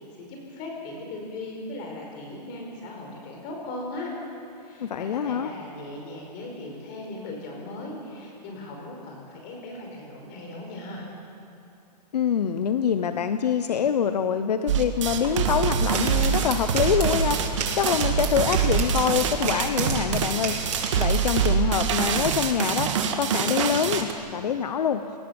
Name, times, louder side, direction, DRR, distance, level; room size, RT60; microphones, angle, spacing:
voice 1, 0.2-4.1 4.5-11.1, left 2 dB, 25° left, 0 dB, 4.9 m, -38 dB
voice 2, 4.8-5.5 12.1-17.4 17.7-20.6 21.0-25.0, left 8 dB, 70° left, 9 dB, 1.0 m, -25 dB
sound 1, 14.7-24.1, right 7 dB, 45° right, 2.0 m, -25 dB
sound 2, 15.1-22.3, right 4 dB, 70° right, 6.3 m, -34 dB
27.0 x 18.0 x 7.2 m, 2.6 s
hypercardioid pair, 170°, 21 cm